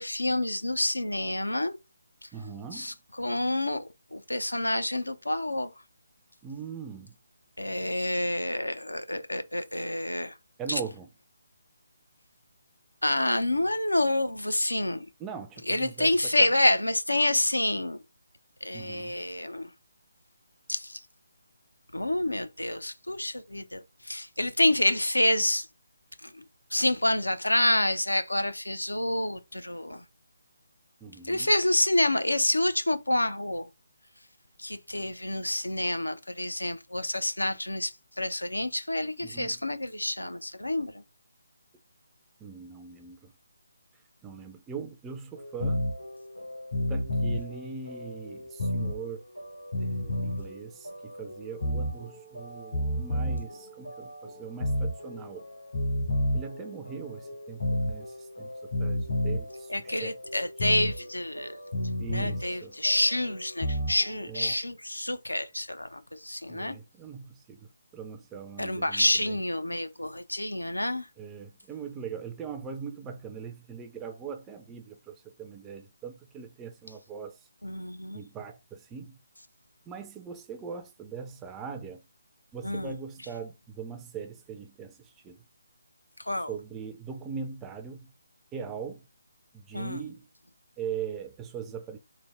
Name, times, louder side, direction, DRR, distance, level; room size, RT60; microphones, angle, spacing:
voice 1, 0.0-1.8 2.7-5.7 7.6-10.3 10.7-10.8 13.0-15.1 15.7-18.0 18.6-19.7 20.7-21.0 21.9-25.7 26.2-26.4 26.7-30.0 31.2-33.7 34.6-41.0 59.7-61.6 62.1-66.8 68.6-71.1 77.6-78.2 82.6-82.9 86.2-86.5 89.7-90.0, left 1 dB, 80° left, 0.5 m, -28 dB
voice 2, 2.3-2.9 6.4-7.2 10.6-11.1 15.2-16.5 18.7-19.1 31.0-31.5 39.2-39.6 42.4-43.3 44.2-45.9 46.8-49.2 49.8-55.5 56.3-60.2 62.0-62.8 64.3-64.5 66.5-69.4 71.2-77.4 78.1-79.2 79.9-82.0 82.5-85.4 86.5-88.1 88.5-89.1 89.5-90.3 90.8-92.0, right 6 dB, 10° right, 0.4 m, -41 dB
sound 1, 45.3-64.5, equal, 60° left, 1.8 m, -32 dB
3.3 x 2.1 x 3.5 m
figure-of-eight pair, 145°, 0 cm